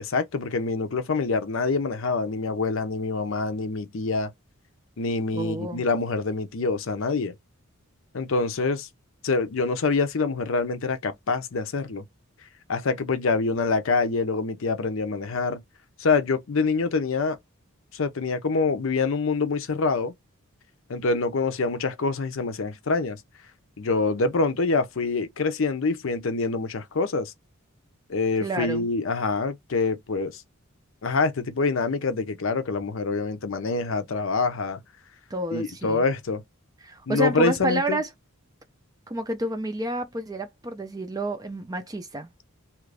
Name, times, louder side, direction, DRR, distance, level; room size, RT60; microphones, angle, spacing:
voice 1, 0.0-4.3 5.0-7.3 8.1-8.9 9.2-12.0 12.7-15.6 16.0-17.4 17.9-20.1 20.9-23.2 23.8-27.3 28.1-30.4 31.0-34.8 35.5-36.4 37.1-38.0, left 4 dB, 60° left, 0.6 m, -25 dB
voice 2, 5.3-5.9 28.4-28.9 35.3-36.0 36.8-38.1 39.1-42.3, right 1 dB, 15° right, 0.4 m, -29 dB
2.8 x 2.5 x 3.3 m
head